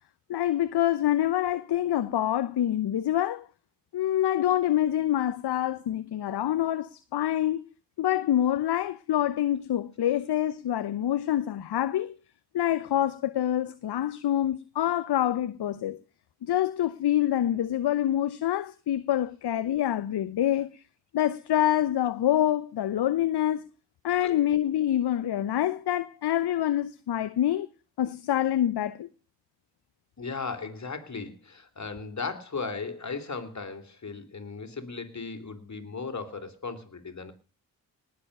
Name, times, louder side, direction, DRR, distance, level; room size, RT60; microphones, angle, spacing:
voice 1, 0.3-3.4 3.9-7.6 8.0-12.1 12.5-16.0 16.4-20.7 21.1-23.6 24.0-27.7 28.0-29.1, left 12 dB, 55° left, 0.9 m, -26 dB
voice 2, 30.2-37.3, left 4 dB, 35° left, 3.2 m, -36 dB
19.0 x 7.3 x 6.5 m
hypercardioid pair, 40°, 47 cm